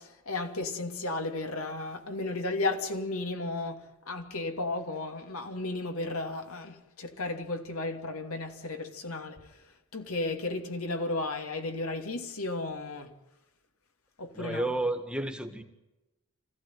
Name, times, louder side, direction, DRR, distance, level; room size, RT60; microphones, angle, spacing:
voice 1, 0.0-9.4 9.9-13.1 14.2-14.7, left 2 dB, 80° left, 2.9 m, -34 dB
voice 2, 14.4-15.6, right 2 dB, 5° right, 1.7 m, -31 dB
26.0 x 16.0 x 9.4 m
head